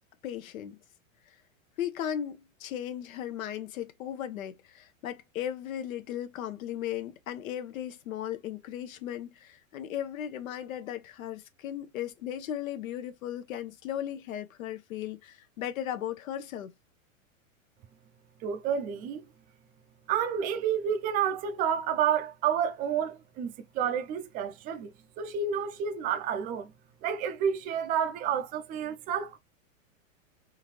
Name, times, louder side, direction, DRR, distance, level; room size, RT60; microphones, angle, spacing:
voice 1, 0.2-0.8 1.8-16.7, left 10 dB, 80° left, 0.8 m, -36 dB
voice 2, 18.4-19.2 20.1-24.9 25.2-26.7 27.0-29.4, right 8 dB, 20° right, 0.5 m, -30 dB
3.9 x 2.5 x 3.0 m
hypercardioid pair, 140°, 41 cm